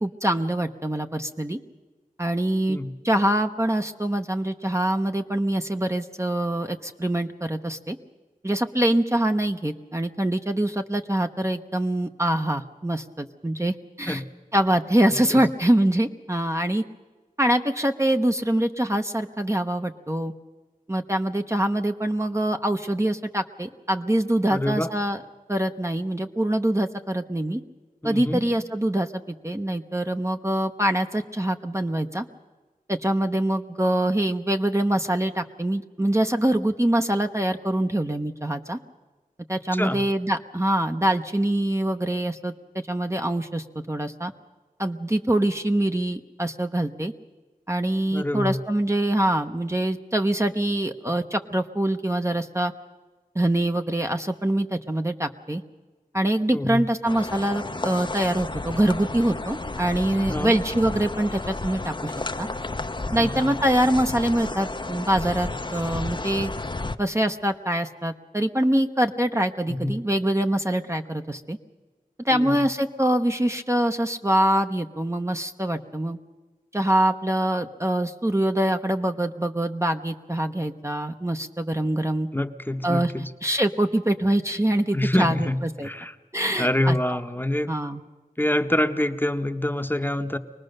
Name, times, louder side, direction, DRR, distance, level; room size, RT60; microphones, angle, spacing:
voice 1, 0.0-1.6 2.2-2.8 3.0-8.0 8.4-14.2 14.5-16.8 17.4-20.3 20.9-25.2 25.5-27.6 28.0-32.2 32.9-38.8 39.5-42.5 42.9-44.3 44.8-47.1 47.7-52.7 53.3-55.6 56.1-62.5 63.1-66.5 67.0-71.6 72.2-76.2 76.7-82.3 82.8-83.1 83.4-85.9 86.3-87.2 87.7-88.0, right 1 dB, 20° right, 5 dB, 0.9 m, -24 dB
voice 2, 15.1-15.4 24.5-24.9 28.0-28.5 39.7-40.0 48.1-48.6 56.5-56.8 60.3-60.6 63.2-63.5 69.7-70.0 72.3-72.7 82.3-83.3 84.9-86.1 86.6-87.7 88.4-90.4, left 1 dB, 15° left, 8 dB, 1.0 m, -26 dB
sound 1, 57.1-67.0, left 2 dB, 30° left, 0.7 m, -32 dB
24.0 x 19.5 x 6.6 m, 1.3 s
wide cardioid pair, 50°, 15 cm